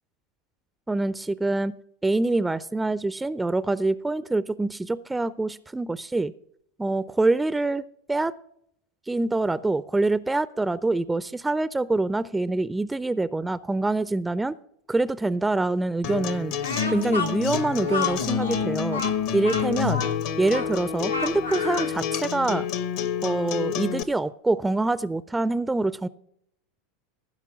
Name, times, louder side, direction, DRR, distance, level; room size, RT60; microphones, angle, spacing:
voice 1, 0.9-1.7 2.0-6.3 6.8-8.3 9.1-14.5 14.9-16.5 16.9-19.0 19.3-20.0 20.4-22.7 23.2-26.1, right 2 dB, 10° right, 17 dB, 0.4 m, -25 dB
Acoustic guitar, 16.0-24.0, left 8 dB, 55° left, 0.8 m, -28 dB
Speech, 16.6-22.0, left 4 dB, 90° left, 1.1 m, -31 dB
15.5 x 5.4 x 6.1 m, 0.71 s
figure-of-eight pair, 80°, 0 cm